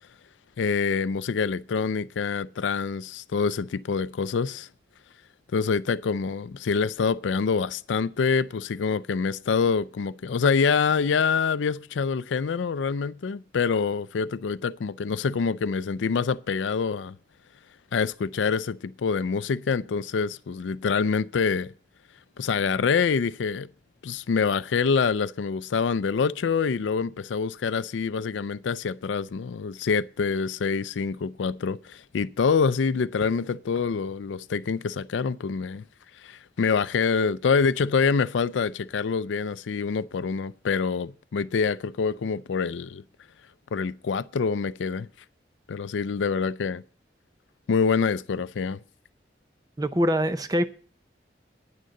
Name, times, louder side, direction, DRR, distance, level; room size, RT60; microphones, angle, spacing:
voice 1, 0.6-4.7 5.5-17.2 17.9-21.7 22.4-23.7 24.0-35.8 36.2-43.0 43.7-45.1 45.7-46.8 47.7-48.8, left 5 dB, 90° left, 0.4 m, -26 dB
voice 2, 49.8-50.6, equal, 20° right, 0.6 m, -23 dB
9.6 x 6.4 x 7.7 m
head